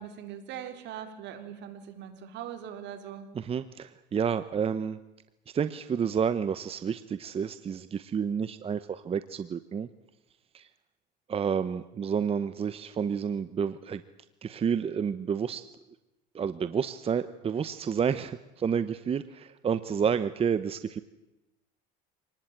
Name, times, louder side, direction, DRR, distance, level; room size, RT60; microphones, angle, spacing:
voice 1, 0.0-3.3, right 9 dB, 65° right, 7 dB, 4.0 m, -41 dB
voice 2, 3.3-5.0 5.5-9.9 10.5-10.7 11.3-14.0 14.4-15.6 16.3-21.0, right 7 dB, 30° right, 13 dB, 0.9 m, -30 dB
26.5 x 19.5 x 9.0 m, 0.99 s
cardioid pair, 115°, 20 cm